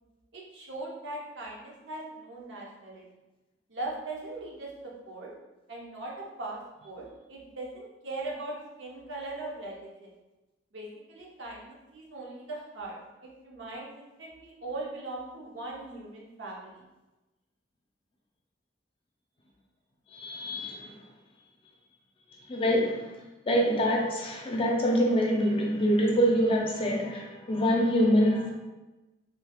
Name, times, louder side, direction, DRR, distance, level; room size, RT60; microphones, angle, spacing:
voice 1, 0.3-3.0 3.7-4.7 5.0-5.3 5.7-10.1 10.7-16.8 26.4-26.6, right 2 dB, 80° right, -3 dB, 0.8 m, -40 dB
voice 2, 20.1-21.0 22.5-23.0 23.5-28.5, equal, 30° left, -1 dB, 0.5 m, -25 dB
3.4 x 3.1 x 2.3 m, 1.1 s
head